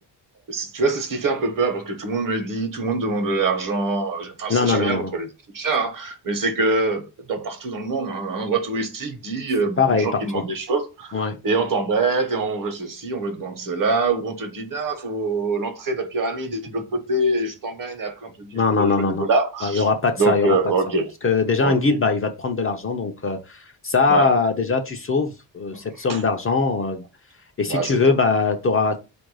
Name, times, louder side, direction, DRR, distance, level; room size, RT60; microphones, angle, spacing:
voice 1, 0.5-5.3 5.5-19.9 20.2-21.1 21.6-22.0 24.1-24.3 25.7-25.8 26.1-26.2 27.6-28.0, right 3 dB, 45° right, 1.0 m, -24 dB
voice 2, 4.5-5.1 9.8-10.4 11.1-11.4 18.5-19.2 19.6-20.6 21.2-27.0 27.6-29.0, left 4 dB, 30° left, 0.5 m, -21 dB
4.5 x 2.6 x 4.6 m
cardioid pair, 135°, 44 cm